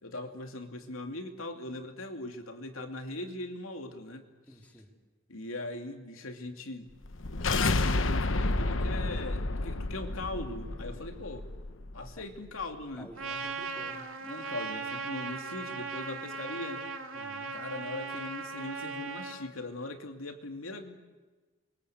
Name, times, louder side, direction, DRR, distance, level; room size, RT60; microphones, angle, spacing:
voice 1, 0.0-4.2 5.3-6.9 7.3-11.5 11.9-13.1 14.2-16.8 17.5-21.0, left 2 dB, 85° left, 5 dB, 2.8 m, -40 dB
voice 2, 4.5-4.9 13.0-14.1 17.1-17.5, equal, 5° left, 1 dB, 3.8 m, -50 dB
sound 1, 7.0-12.1, left 2 dB, 70° left, 1.1 m, -30 dB
Trumpet, 13.2-19.4, right 4 dB, 75° right, 2.4 m, -38 dB
29.0 x 23.5 x 8.2 m, 1.3 s
head